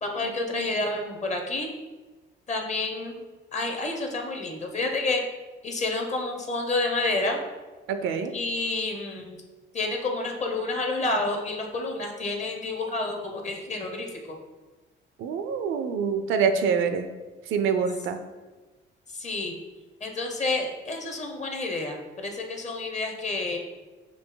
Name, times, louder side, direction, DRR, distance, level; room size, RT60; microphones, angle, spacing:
voice 1, 0.0-1.7 2.5-3.2 3.5-5.2 5.6-7.4 8.3-9.4 9.7-14.4 19.1-19.5 20.0-23.6, left 2 dB, 35° left, 3 dB, 0.9 m, -29 dB
voice 2, 7.9-8.3 15.2-17.1 17.5-18.2, right 6 dB, 80° right, 9 dB, 0.5 m, -26 dB
5.0 x 2.7 x 3.8 m, 1.2 s
cardioid pair, 90°, 20 cm